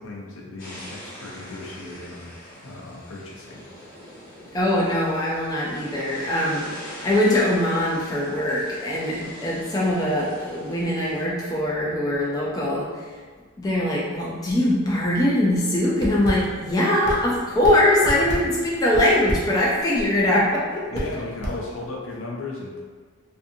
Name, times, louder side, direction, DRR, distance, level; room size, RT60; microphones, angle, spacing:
voice 1, 0.0-2.3 2.6-3.6 18.0-18.1 20.9-22.9, left 2 dB, 75° left, -2 dB, 0.5 m, -36 dB
sound 1, 0.6-11.2, left 1 dB, 45° left, 1.0 m, -43 dB
voice 2, 4.5-13.2 13.6-21.0, left 1 dB, 15° left, -5 dB, 0.3 m, -22 dB
sound 2, 15.9-22.1, equal, 55° right, 0.5 m, -33 dB
2.5 x 2.5 x 2.5 m, 1.5 s
head